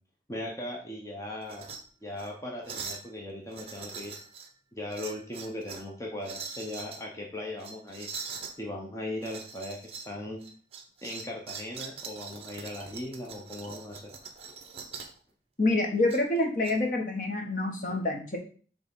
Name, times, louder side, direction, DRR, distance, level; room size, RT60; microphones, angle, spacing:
voice 1, 0.3-1.7 2.0-4.2 4.7-8.1 8.6-10.4 11.0-14.1, left 1 dB, 15° left, -1 dB, 1.0 m, -38 dB
sound 1, 1.4-1.8 2.1-2.3 2.6-3.1 3.5-4.5 4.9-5.9 6.2-7.0 7.6-8.5 9.2-10.1 10.4-15.2 16.1-16.7, right 5 dB, 35° right, 0.9 m, -42 dB
voice 2, 15.6-18.4, left 2 dB, 45° left, 2 dB, 1.4 m, -27 dB
6.5 x 3.6 x 5.4 m, 0.41 s
head